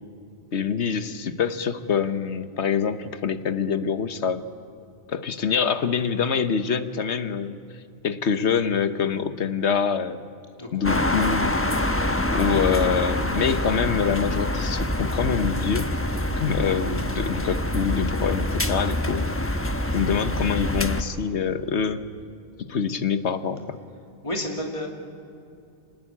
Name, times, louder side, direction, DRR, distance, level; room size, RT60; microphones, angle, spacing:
voice 1, 0.5-4.4 5.1-7.6 8.0-10.2 10.7-11.6 12.3-15.9 16.4-19.6 19.9-22.0 22.7-23.8, left 6 dB, 90° left, 11 dB, 1.4 m, -25 dB
sound 1, 10.8-21.0, left 1 dB, 15° left, 1.0 m, -26 dB
voice 2, 24.2-24.9, left 1 dB, 30° left, 1 dB, 2.7 m, -30 dB
26.5 x 19.5 x 8.7 m, 2.6 s
omnidirectional pair, 1.1 m